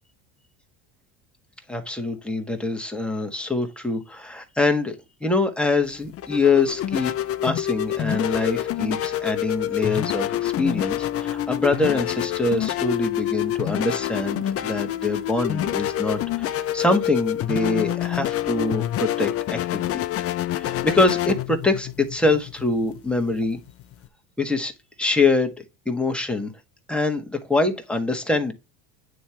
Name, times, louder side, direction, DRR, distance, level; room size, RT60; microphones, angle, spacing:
voice 1, 1.7-5.0 5.2-7.1 7.4-20.0 20.6-23.6 24.4-24.7 25.0-26.5 26.9-28.5, left 3 dB, 5° left, 1.5 m, -24 dB
sound 1, 5.8-24.1, left 12 dB, 40° left, 0.7 m, -27 dB
9.3 x 3.3 x 4.4 m
cardioid pair, 130°, 37 cm